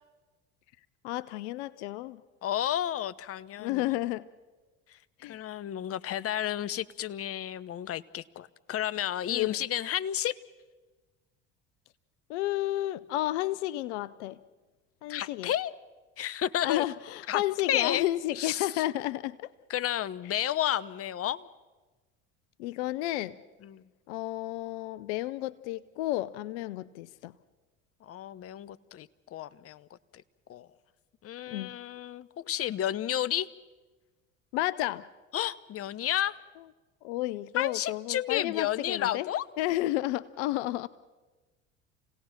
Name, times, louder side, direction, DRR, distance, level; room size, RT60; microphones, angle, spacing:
voice 1, 1.0-2.2 3.6-4.2 5.2-5.4 9.3-9.5 12.3-14.4 15.0-15.5 16.6-19.5 20.3-20.4 22.6-23.4 24.1-27.3 31.5-31.7 34.5-35.0 37.0-39.3 39.6-40.9, left 15 dB, 75° left, 18 dB, 0.7 m, -32 dB
voice 2, 2.4-3.8 5.2-10.4 15.1-15.7 16.2-16.8 17.3-17.4 17.7-18.1 18.4-18.8 19.7-21.5 23.6-23.8 28.0-29.9 30.5-30.7 31.2-33.5 35.3-36.4 37.5-39.4, left 11 dB, 40° left, 18 dB, 0.8 m, -31 dB
29.0 x 17.5 x 5.8 m, 1.2 s
hypercardioid pair, 70°, 35 cm